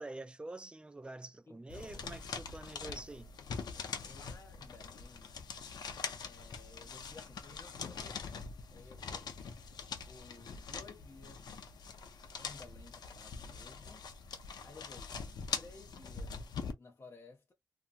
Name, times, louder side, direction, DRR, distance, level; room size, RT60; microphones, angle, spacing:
voice 1, 0.0-3.3, right 2 dB, 15° right, 0.3 m, -46 dB
voice 2, 1.5-2.0 2.8-3.2 3.7-5.4 6.3-9.3 10.1-11.5 12.4-14.1 14.6-15.2 15.5-16.4 16.8-17.5, left 3 dB, 35° left, 0.5 m, -56 dB
sound 1, 1.7-16.7, left 5 dB, 90° left, 0.6 m, -43 dB
2.8 x 2.4 x 2.5 m
wide cardioid pair, 100°, 7 cm